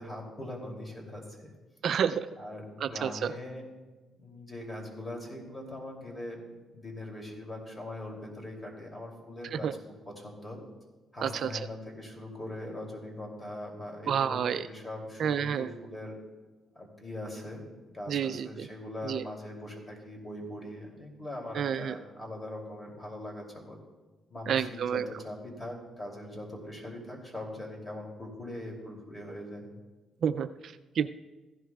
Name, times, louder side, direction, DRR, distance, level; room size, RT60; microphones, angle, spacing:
voice 1, 0.0-1.5 2.4-3.6 4.2-6.4 6.7-9.7 10.2-10.6 11.1-16.1 16.7-17.6 17.9-23.8 24.3-29.7, left 1 dB, 20° left, 1 dB, 2.8 m, -41 dB
voice 2, 1.8-2.3 2.8-3.3 9.6-9.7 11.2-11.5 14.1-14.6 15.2-15.7 18.1-18.7 19.0-19.2 21.6-21.9 24.5-25.0 30.2-31.1, right 8 dB, 65° right, 12 dB, 0.3 m, -29 dB
15.5 x 11.0 x 2.3 m, 1.2 s
cardioid pair, 90°, 0 cm